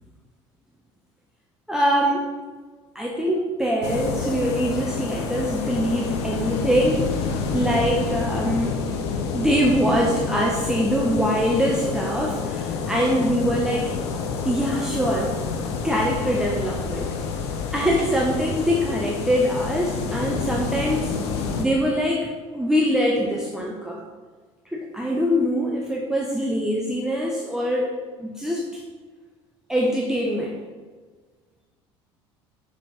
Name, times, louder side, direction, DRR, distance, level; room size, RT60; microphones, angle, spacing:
voice 1, 1.7-2.3 3.0-8.8 9.3-13.9 14.4-15.3 15.8-17.1 17.7-24.0 24.7-28.8 29.7-30.6, equal, 5° right, -2 dB, 0.8 m, -23 dB
sound 1, 3.8-21.6, left 5 dB, 65° left, 0.7 m, -28 dB
6.3 x 4.3 x 4.0 m, 1.4 s
figure-of-eight pair, 60°, 15 cm